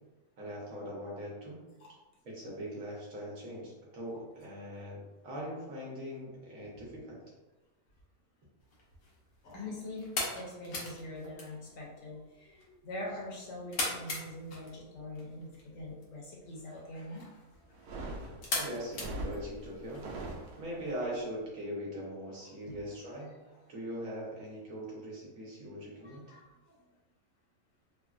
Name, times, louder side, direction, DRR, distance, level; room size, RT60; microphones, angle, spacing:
voice 1, 0.4-1.6 2.2-7.2 18.5-20.1 20.6-23.3 23.7-26.3, equal, 65° right, -4 dB, 1.1 m, -41 dB
sound 1, 8.6-20.0, left 2 dB, 85° left, 1.2 m, -41 dB
voice 2, 9.4-10.1 10.3-17.3 22.7-22.8 26.0-26.4, left 1 dB, 65° left, -3 dB, 1.1 m, -43 dB
sound 2, 17.7-20.9, right 1 dB, 90° right, 1.1 m, -41 dB
3.4 x 2.0 x 2.4 m, 1.1 s
omnidirectional pair, 1.6 m